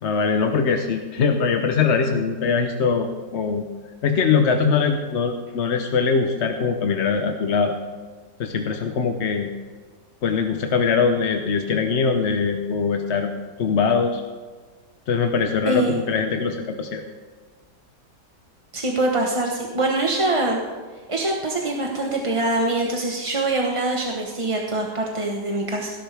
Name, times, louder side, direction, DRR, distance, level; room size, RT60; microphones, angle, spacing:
voice 1, 0.0-3.6 4.0-7.8 8.4-9.5 10.2-13.3 13.6-14.2 15.1-17.0, left 5 dB, 55° left, 5 dB, 0.8 m, -22 dB
voice 2, 15.6-16.0 18.7-20.6 21.1-25.9, right 2 dB, 25° right, -1 dB, 0.9 m, -24 dB
17.5 x 11.5 x 3.4 m, 1.5 s
omnidirectional pair, 1.9 m